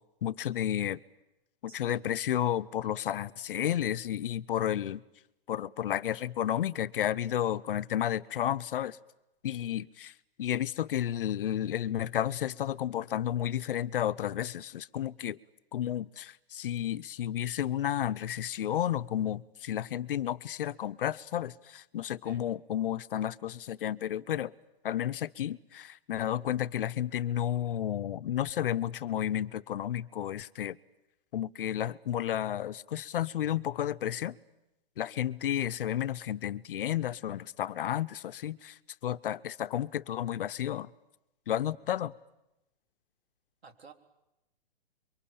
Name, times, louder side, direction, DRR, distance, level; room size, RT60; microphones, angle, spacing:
voice 1, 0.2-1.0 1.7-5.0 5.5-9.0 9.4-10.1 10.4-15.4 15.7-24.5 24.8-30.8 31.3-34.4 35.0-40.9 41.5-42.1, left 11 dB, 60° left, 0.9 m, -32 dB
voice 2, 1.7-2.1 22.2-22.4 43.6-43.9, right 5 dB, 90° right, 4.0 m, -53 dB
27.5 x 23.5 x 8.6 m
hypercardioid pair, 145°, 30 cm